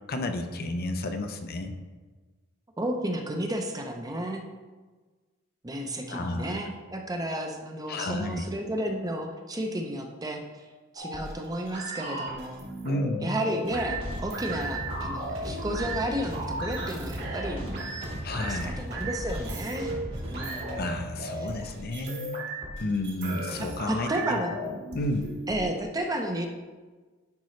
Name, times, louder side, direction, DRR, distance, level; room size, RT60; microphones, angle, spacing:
voice 1, 0.1-1.7 6.1-6.5 7.9-8.4 12.8-13.3 18.2-18.8 20.7-22.4 22.8-24.4 24.9-25.3, left 1 dB, 45° left, 6 dB, 0.6 m, -31 dB
voice 2, 2.8-4.5 5.6-10.6 10.9-12.6 13.2-17.7 18.4-19.9 20.3-21.0 21.4-21.7 23.6-24.5 25.5-26.5, right 1 dB, 20° right, 3 dB, 0.7 m, -32 dB
sound 1, 11.0-25.6, right 2 dB, 55° right, 1.9 m, -36 dB
sound 2, 13.6-20.8, equal, 70° right, 2.0 m, -37 dB
10.5 x 5.3 x 3.2 m, 1.3 s
head